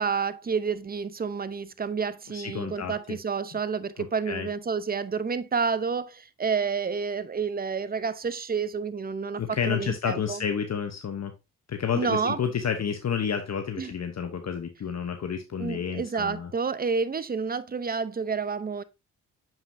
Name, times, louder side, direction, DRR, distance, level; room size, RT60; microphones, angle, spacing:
voice 1, 0.0-10.4 11.9-12.4 13.8-13.9 15.6-18.8, right 5 dB, 25° right, 0.7 m, -29 dB
voice 2, 2.3-3.2 3.5-3.6 4.3-4.5 9.4-11.3 11.7-16.5, left 7 dB, 50° left, 1.0 m, -30 dB
7.2 x 5.4 x 2.6 m
supercardioid pair, 55°, 35 cm